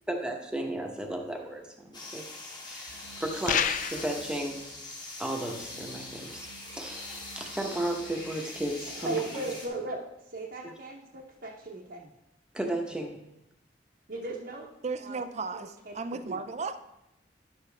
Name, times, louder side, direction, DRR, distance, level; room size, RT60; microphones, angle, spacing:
voice 1, 0.1-2.2 2.6-4.6 5.2-9.1 10.6-10.7 12.5-13.2, right 1 dB, 5° right, 1 dB, 1.0 m, -34 dB
sound 1, 1.9-9.7, left 2 dB, 25° left, 1.6 m, -42 dB
sound 2, 2.9-4.6 5.6-8.9, right 6 dB, 90° right, 1.1 m, -53 dB
sound 3, 3.5-4.2, left 8 dB, 45° left, 0.4 m, -28 dB
voice 2, 9.0-12.1 14.1-14.7 15.0-15.2 15.5-15.9 16.3-16.4, right 2 dB, 55° right, -2 dB, 0.9 m, -37 dB
voice 3, 14.8-16.8, right 4 dB, 35° right, 10 dB, 0.4 m, -35 dB
11.0 x 6.8 x 3.4 m, 0.90 s
head